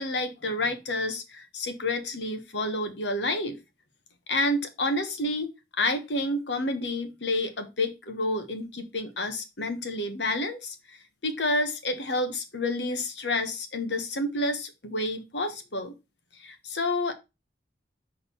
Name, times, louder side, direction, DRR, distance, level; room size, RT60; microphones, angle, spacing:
voice 1, 0.0-3.6 4.3-5.5 5.8-10.7 11.2-15.9 16.4-17.1, left 2 dB, 85° left, 7 dB, 1.3 m, -29 dB
6.4 x 3.8 x 5.5 m, 0.25 s
head